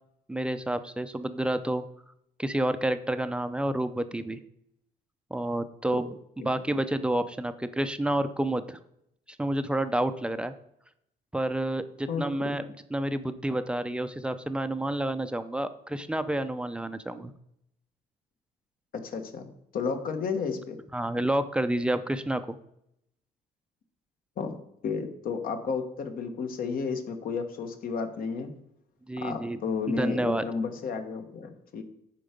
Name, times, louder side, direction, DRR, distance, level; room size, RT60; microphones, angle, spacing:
voice 1, 0.3-1.8 2.4-4.4 5.3-6.1 6.4-8.8 9.4-10.5 11.3-12.6 12.9-17.3 20.9-22.6 29.1-29.6 30.0-30.5, right 1 dB, 5° right, 10 dB, 0.6 m, -29 dB
voice 2, 12.1-12.5 18.9-20.8 24.4-28.5 29.2-31.8, left 5 dB, 60° left, 6 dB, 1.4 m, -32 dB
11.5 x 4.6 x 5.2 m, 0.76 s
cardioid pair, 110°, 17 cm